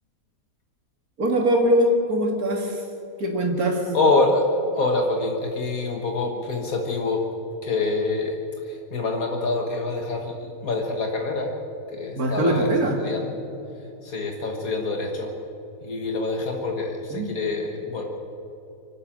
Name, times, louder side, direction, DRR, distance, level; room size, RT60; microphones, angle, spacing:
voice 1, 1.2-2.8 3.2-3.8 12.2-13.0 17.1-17.3, right 1 dB, 85° right, 2 dB, 2.6 m, -22 dB
voice 2, 3.9-4.5 4.7-7.2 7.6-8.4 8.7-11.5 11.9-13.3 14.0-15.3 15.8-18.0, left 3 dB, 70° left, 2 dB, 2.0 m, -26 dB
24.5 x 12.0 x 8.8 m, 2.9 s
omnidirectional pair, 1.5 m